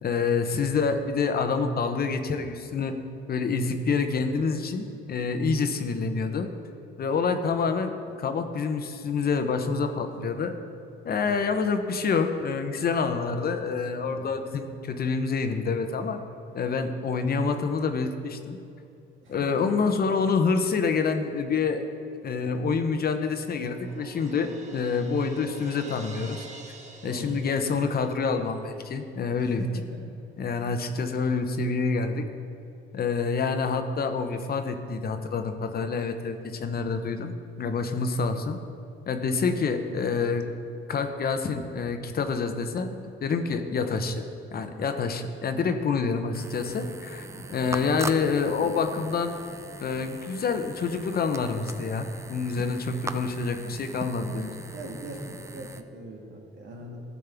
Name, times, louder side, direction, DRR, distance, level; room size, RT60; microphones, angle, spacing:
voice 1, 0.0-3.0 3.3-6.5 7.0-7.9 8.2-10.5 11.0-16.2 16.5-18.6 19.3-21.8 22.2-26.5 27.0-29.6 30.4-32.3 32.9-37.3 37.6-38.6 39.1-40.4 40.9-44.2 44.5-47.3 47.5-49.3 49.8-54.5, left 5 dB, 50° left, 7 dB, 0.8 m, -27 dB
voice 2, 11.1-11.4 14.1-14.3 19.2-19.6 27.0-27.4 29.4-30.0 30.5-30.8 40.0-40.3 47.3-48.1 54.7-57.0, right 1 dB, 70° right, 0 dB, 1.7 m, -42 dB
Crash cymbal, 22.9-28.4, right 3 dB, 35° right, 1.2 m, -47 dB
sound 1, 46.3-55.8, right 2 dB, 15° right, 0.4 m, -40 dB
13.0 x 7.4 x 3.5 m, 2.7 s
cardioid pair, 90°, 20 cm